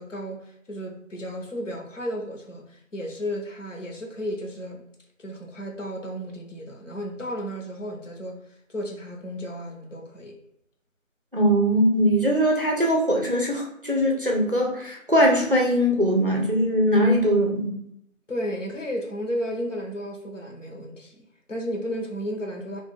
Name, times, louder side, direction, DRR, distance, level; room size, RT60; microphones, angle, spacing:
voice 1, 0.0-4.8 5.2-8.4 8.7-10.4 18.3-22.8, equal, 65° left, 1 dB, 1.0 m, -33 dB
voice 2, 11.3-17.7, equal, 40° right, 0 dB, 0.5 m, -21 dB
2.5 x 2.4 x 3.8 m, 0.75 s
figure-of-eight pair, 170°, 41 cm